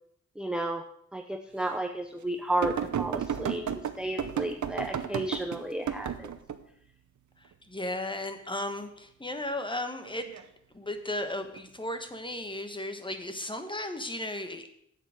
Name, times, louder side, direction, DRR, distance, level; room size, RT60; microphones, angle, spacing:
voice 1, 0.4-0.8 1.1-6.3, right 1 dB, 5° right, 5 dB, 0.7 m, -33 dB
sound 1, 2.6-6.6 10.1-10.4 11.6-11.7, right 8 dB, 75° right, 0.8 m, -33 dB
voice 2, 7.7-10.3 10.7-14.7, left 1 dB, 15° left, 7 dB, 1.3 m, -35 dB
8.8 x 7.8 x 6.4 m, 0.70 s
wide cardioid pair, 80°, 29 cm